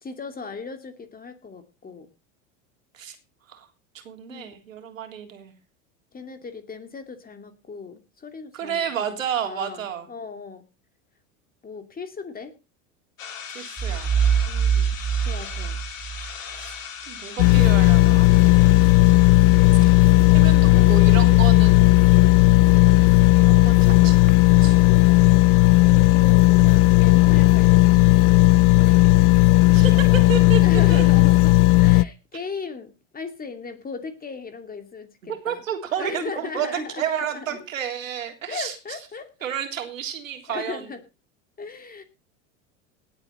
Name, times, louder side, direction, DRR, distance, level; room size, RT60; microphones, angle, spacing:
voice 1, 0.0-2.1 4.3-4.5 6.1-9.2 9.4-10.6 11.6-12.5 14.4-15.8 25.8-29.2 29.9-35.6 36.0-37.0 37.3-37.6 38.5-39.3 40.5-41.0 41.6-42.0, left 4 dB, 25° left, 8 dB, 2.6 m, -37 dB
voice 2, 3.9-5.5 8.5-10.1 13.5-14.1 14.8-14.9 16.5-16.7 17.1-18.3 20.3-21.9 23.4-24.3 24.6-24.8 29.7-30.6 30.9-31.1 35.2-38.7 39.4-40.8, right 9 dB, 90° right, 5 dB, 3.6 m, -31 dB
sound 1, 13.2-26.5, left 7 dB, 85° left, 3.6 m, -41 dB
sound 2, 13.8-16.6, right 7 dB, 15° right, 4.6 m, -23 dB
sound 3, 17.4-32.0, left 19 dB, 65° left, 0.6 m, -15 dB
18.5 x 8.2 x 4.3 m, 0.30 s
hypercardioid pair, 95°, 38 cm